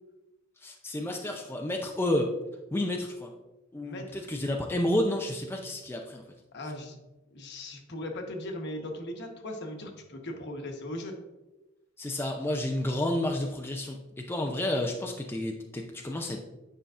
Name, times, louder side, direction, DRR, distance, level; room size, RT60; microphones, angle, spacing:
voice 1, 0.6-2.3 2.7-3.3 3.7-6.2 12.0-16.4, left 1 dB, 10° left, 2 dB, 0.4 m, -30 dB
voice 2, 3.8-4.2 6.5-7.0 7.3-11.2, left 1 dB, 60° left, 3 dB, 1.1 m, -38 dB
9.1 x 5.5 x 2.5 m, 1.1 s
head